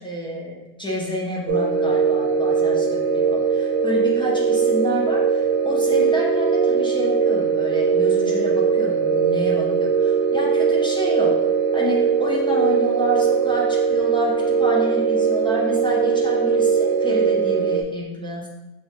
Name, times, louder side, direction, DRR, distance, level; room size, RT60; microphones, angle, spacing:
voice 1, 0.0-18.5, equal, 5° left, -4 dB, 0.4 m, -28 dB
sound 1, 1.5-17.8, right 6 dB, 60° right, 0.6 m, -20 dB
4.7 x 3.0 x 2.8 m, 1.0 s
omnidirectional pair, 1.3 m